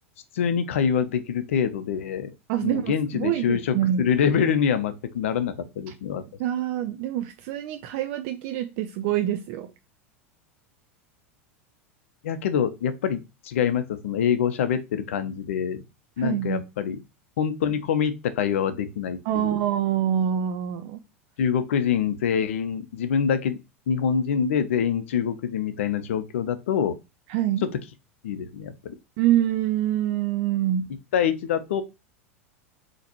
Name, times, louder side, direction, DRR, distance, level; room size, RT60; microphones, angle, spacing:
voice 1, 0.3-2.3 2.6-6.2 12.2-15.8 16.2-17.0 17.4-19.5 21.4-23.6 23.9-27.0 28.2-29.0 31.1-31.8, left 7 dB, 65° left, 0.6 m, -25 dB
voice 2, 2.5-4.1 6.4-9.7 16.2-16.6 19.3-21.0 27.3-27.7 29.2-30.9, right 11 dB, 50° right, 0.4 m, -25 dB
4.0 x 2.9 x 2.8 m
figure-of-eight pair, 85°, 7 cm